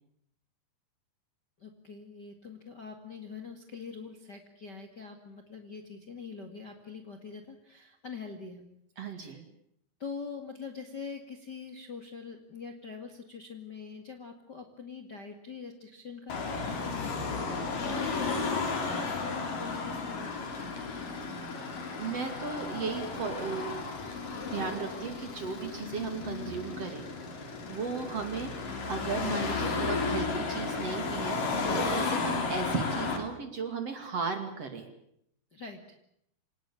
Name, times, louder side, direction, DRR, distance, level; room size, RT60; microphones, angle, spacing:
voice 1, 1.6-8.7 9.0-9.4 10.0-20.8 35.5-36.0, left 5 dB, 35° left, 5 dB, 2.0 m, -44 dB
voice 2, 9.0-9.4 17.9-18.1 21.9-23.7 24.5-27.1 27.7-34.9, right 5 dB, 40° right, 7 dB, 3.1 m, -36 dB
Car passing by / Traffic noise roadway noise / Engine, 16.3-33.2, left 4 dB, 55° left, 5.1 m, -33 dB
26.5 x 19.0 x 8.8 m, 0.73 s
omnidirectional pair, 4.7 m